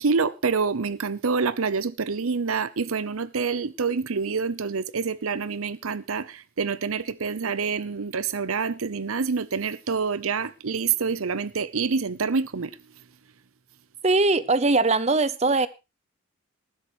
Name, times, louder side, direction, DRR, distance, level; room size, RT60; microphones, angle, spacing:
voice 1, 0.0-12.8, right 5 dB, 90° right, 0.8 m, -27 dB
voice 2, 14.0-15.7, right 3 dB, 30° right, 0.7 m, -21 dB
19.5 x 10.5 x 3.1 m
head